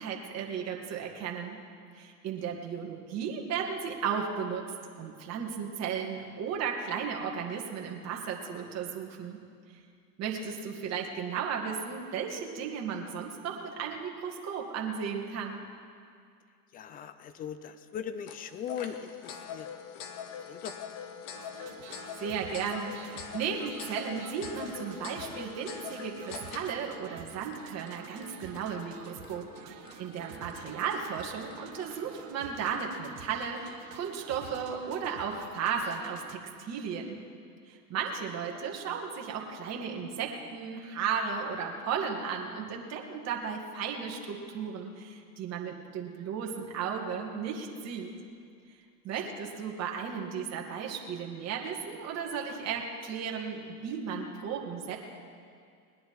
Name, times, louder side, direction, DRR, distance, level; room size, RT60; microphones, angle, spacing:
voice 1, 0.0-1.6 1.9-4.7 5.0-9.4 10.2-15.6 22.2-37.2 37.7-48.1 49.0-55.0, right 6 dB, 35° right, 0 dB, 2.0 m, -35 dB
voice 2, 16.7-19.8 20.5-20.7 30.4-30.6 38.5-38.6 49.2-49.3, left 8 dB, 20° left, 12 dB, 0.4 m, -40 dB
sound 1, 18.3-33.1, left 7 dB, 45° left, 1.4 m, -44 dB
sound 2, 21.3-36.3, right 8 dB, 70° right, 1.6 m, -49 dB
20.5 x 10.0 x 4.7 m, 2.3 s
hypercardioid pair, 115°, 47 cm